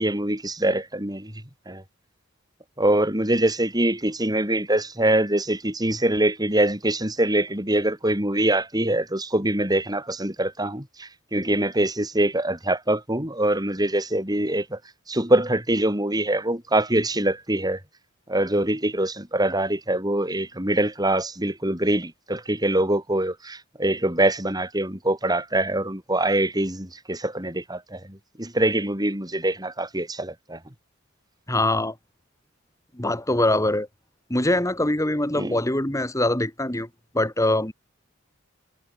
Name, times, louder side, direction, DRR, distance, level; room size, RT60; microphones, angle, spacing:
voice 1, 0.0-1.3 1.7-1.8 2.8-14.8 15.1-17.8 18.3-30.6 35.3-35.6, right 1 dB, 20° right, 7.5 m, -24 dB
voice 2, 31.5-31.9 32.9-33.9 34.3-36.9 37.1-37.7, left 1 dB, 15° left, 2.4 m, -23 dB
head